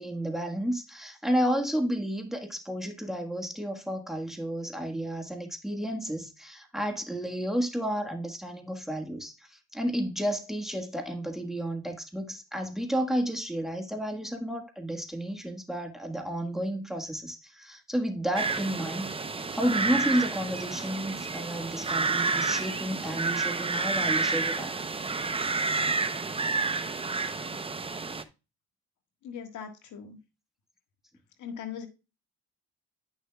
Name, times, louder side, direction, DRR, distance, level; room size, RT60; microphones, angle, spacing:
voice 1, 0.0-19.1 19.5-24.8, equal, ahead, 1.5 m, -31 dB
sound 1, 18.4-28.2, right 4 dB, 20° right, 0.7 m, -30 dB
voice 2, 29.2-30.2 31.4-31.9, left 7 dB, 80° left, 1.7 m, -39 dB
10.5 x 6.4 x 2.3 m
cardioid pair, 90°, 30 cm